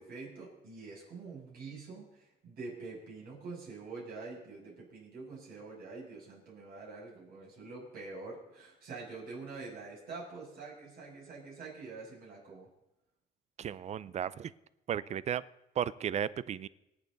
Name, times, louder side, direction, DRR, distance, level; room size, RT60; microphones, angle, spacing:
voice 1, 0.0-12.7, right 3 dB, 65° right, -3 dB, 7.0 m, -46 dB
voice 2, 13.6-14.5 14.9-15.4 15.8-16.7, right 9 dB, 40° right, 18 dB, 0.5 m, -34 dB
26.0 x 8.8 x 4.0 m, 0.93 s
cardioid pair, 110°, 17 cm